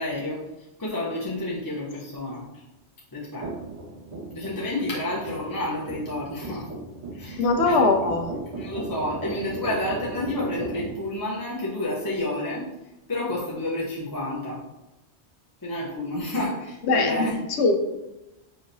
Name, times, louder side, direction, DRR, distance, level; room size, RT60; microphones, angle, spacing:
voice 1, 0.0-2.6 3.1-3.5 4.3-6.7 7.1-7.8 8.6-12.7 13.1-14.6 15.6-17.3, left 1 dB, 20° left, -6 dB, 0.6 m, -30 dB
sound 1, 3.4-10.9, right 2 dB, 85° right, 1.9 m, -37 dB
voice 2, 7.4-8.3 16.9-17.7, left 3 dB, 75° left, 5 dB, 0.9 m, -21 dB
5.3 x 2.8 x 2.6 m, 0.98 s
omnidirectional pair, 1.2 m